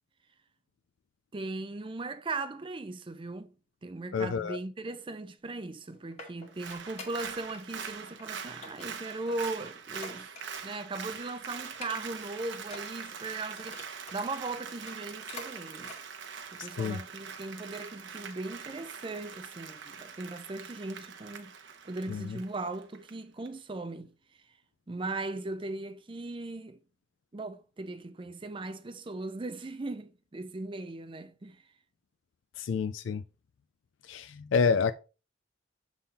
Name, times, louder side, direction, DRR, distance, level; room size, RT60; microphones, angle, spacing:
voice 1, 1.3-3.5 3.8-10.3 10.6-13.8 14.1-15.9 16.5-21.5 21.8-24.1 24.9-26.8 27.3-31.6, right 2 dB, 25° right, 0.5 m, -38 dB
voice 2, 4.1-4.6 16.6-17.0 22.1-22.4 32.6-33.2 34.0-34.9, left 5 dB, 80° left, 0.4 m, -29 dB
sound 1, 5.6-7.6 7.9-8.2 8.6-10.8 11.1-11.3 11.7-12.3 12.6-14.2 14.7-15.5 15.8-16.0 16.5-16.6, left 2 dB, 35° left, 1.7 m, -47 dB
Applause, 6.5-23.1 23.5-23.6, right 6 dB, 70° right, 0.9 m, -43 dB
7.2 x 3.7 x 4.1 m
head